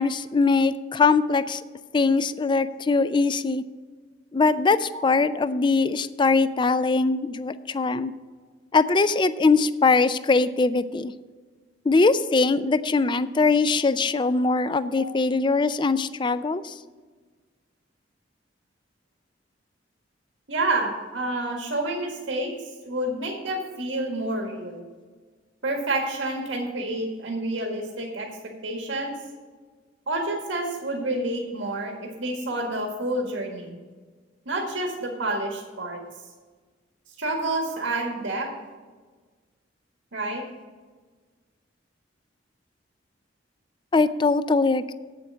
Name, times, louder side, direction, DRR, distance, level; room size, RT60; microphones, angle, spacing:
voice 1, 0.0-1.6 1.9-3.6 4.3-8.1 8.7-11.1 11.9-16.6 43.9-44.9, left 4 dB, 25° left, 14 dB, 0.4 m, -21 dB
voice 2, 14.7-15.1 20.5-22.5 22.8-24.8 25.6-28.3 28.6-29.1 30.1-33.8 34.5-36.0 37.2-38.5 40.1-40.4, right 2 dB, 85° right, 0 dB, 1.8 m, -29 dB
8.4 x 7.7 x 6.2 m, 1.4 s
head